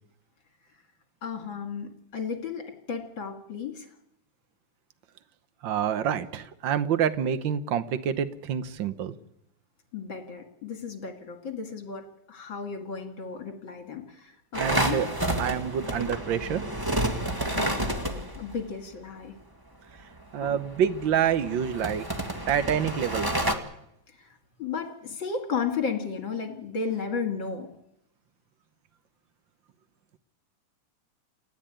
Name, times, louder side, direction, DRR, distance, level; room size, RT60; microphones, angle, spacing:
voice 1, 1.2-3.9 9.9-15.1 17.2-19.4 20.4-20.6 24.2-27.7, left 5 dB, 45° left, 5 dB, 2.8 m, -34 dB
voice 2, 5.6-9.1 14.6-15.1 15.4-16.6 20.3-22.0 22.5-23.5, right 8 dB, 60° right, 12 dB, 1.3 m, -27 dB
sound 1, 14.5-18.6 20.5-23.5, right 1 dB, 15° right, 0.8 m, -30 dB
29.5 x 13.0 x 9.2 m, 0.82 s
omnidirectional pair, 3.4 m